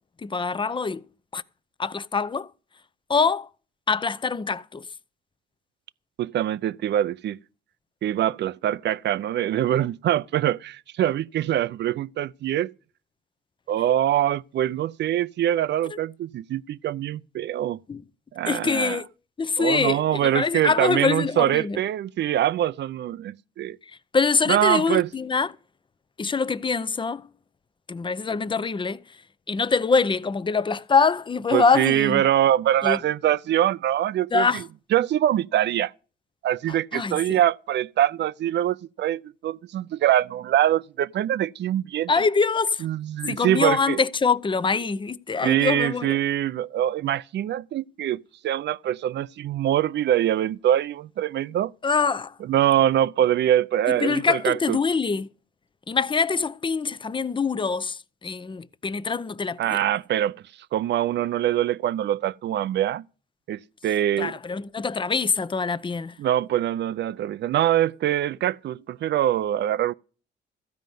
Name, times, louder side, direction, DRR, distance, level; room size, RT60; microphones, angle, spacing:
voice 1, 0.2-1.0 1.3-1.4 1.8-2.5 3.1-3.5 3.9-4.8 15.9-16.0 17.9-18.0 18.5-19.1 19.4-21.8 24.1-25.6 26.2-27.2 27.9-29.0 29.5-32.2 32.8-33.0 34.3-34.6 36.9-37.4 42.1-42.9 43.3-46.2 51.8-52.3 53.9-55.3 55.9-59.8 64.2-66.1, left 4 dB, 25° left, 0.6 m, -24 dB
voice 2, 6.2-7.4 8.0-12.7 13.7-17.8 18.3-19.0 19.6-23.8 24.5-25.1 31.5-34.6 34.9-35.9 36.4-42.1 42.8-44.0 45.4-51.7 52.4-54.8 59.6-60.4 60.7-63.0 63.5-64.3 66.2-69.9, right 12 dB, 60° right, 0.5 m, -24 dB
15.0 x 5.1 x 9.3 m
cardioid pair, 90°, 20 cm